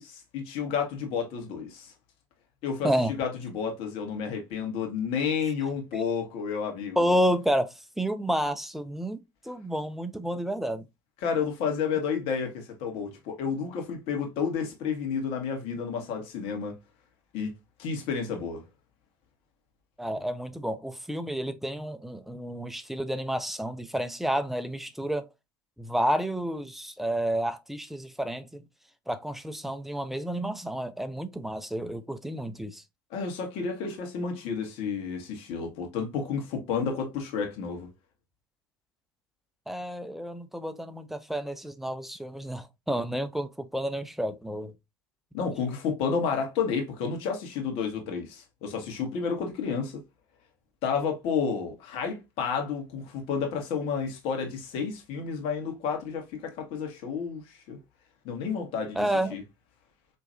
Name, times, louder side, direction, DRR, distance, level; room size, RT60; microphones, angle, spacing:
voice 1, 0.0-1.9 2.6-2.9 3.2-7.1 11.2-16.7 17.3-17.5 17.8-18.6 33.1-37.9 45.3-50.0 50.8-57.8 58.2-59.4, left 6 dB, 55° left, 1.5 m, -31 dB
voice 2, 7.0-10.8 20.0-25.3 25.8-28.6 29.1-32.8 39.7-44.7 59.0-59.4, equal, ahead, 0.6 m, -30 dB
4.4 x 3.0 x 2.7 m
hypercardioid pair, 75°, 12 cm